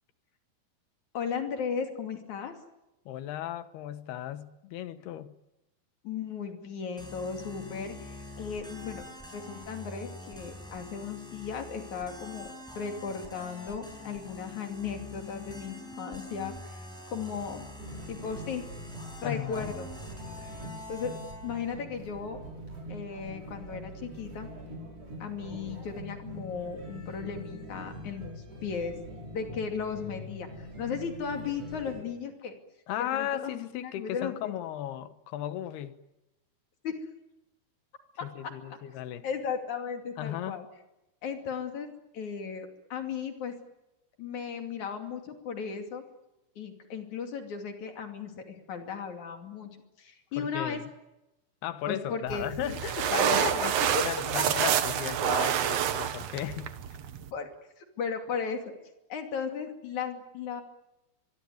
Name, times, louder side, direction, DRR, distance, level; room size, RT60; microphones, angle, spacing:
voice 1, 1.1-2.6 6.0-9.0 9.3-16.9 17.1-17.7 18.1-18.6 19.2-19.9 20.9-22.4 22.9-24.5 25.2-29.0 29.3-32.5 33.1-34.5 36.8-37.0 38.2-38.3 39.2-40.7 41.2-41.9 42.1-43.5 44.2-46.0 46.6-50.8 51.9-52.7 53.6-54.0 54.4-54.5 57.3-57.5 57.8-58.7 59.1-60.6, left 6 dB, 50° left, 3.7 m, -36 dB
voice 2, 3.1-5.3 19.2-19.7 32.9-36.0 38.2-39.3 40.2-40.6 50.4-50.9 51.6-53.7 54.0-56.7, left 11 dB, 80° left, 3.2 m, -35 dB
sound 1, 7.0-21.8, left 2 dB, ahead, 7.2 m, -45 dB
sound 2, 17.8-32.0, equal, 35° right, 7.0 m, -43 dB
sound 3, 52.3-57.3, right 9 dB, 70° right, 1.5 m, -28 dB
24.5 x 23.0 x 9.5 m
omnidirectional pair, 4.6 m